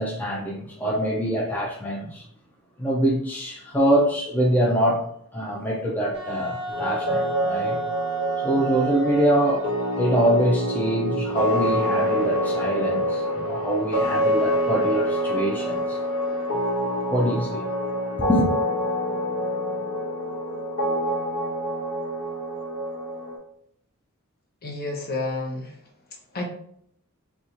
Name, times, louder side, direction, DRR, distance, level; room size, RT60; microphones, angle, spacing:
voice 1, 0.0-2.2 2.8-5.0 5.3-7.8 8.4-9.7 10.0-16.0 17.1-17.7 18.3-18.5, right 1 dB, 10° left, -3 dB, 0.4 m, -24 dB
Wind instrument woodwind instrument, 6.1-11.6, right 4 dB, 60° right, 0.9 m, -33 dB
sound 1, 6.7-23.4, equal, 65° left, 1.2 m, -26 dB
voice 2, 24.6-25.8 26.3-26.5, left 2 dB, 45° left, 1 dB, 0.8 m, -30 dB
4.2 x 2.3 x 2.5 m, 0.68 s
head